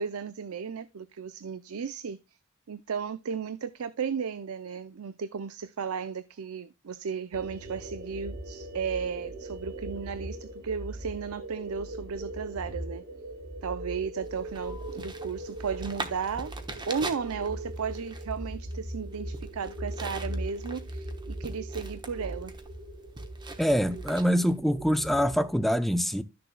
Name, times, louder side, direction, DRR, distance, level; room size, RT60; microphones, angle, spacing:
voice 1, 0.0-2.2 2.7-13.0 13.6-16.5 16.9-22.5, right 6 dB, 75° right, 0.5 m, -34 dB
sound 1, 7.3-25.6, right 1 dB, 50° right, 1.9 m, -39 dB
sound 2, 14.2-24.6, right 3 dB, 20° right, 1.0 m, -43 dB
voice 2, 23.6-26.2, equal, ahead, 0.5 m, -25 dB
12.5 x 6.7 x 2.2 m
head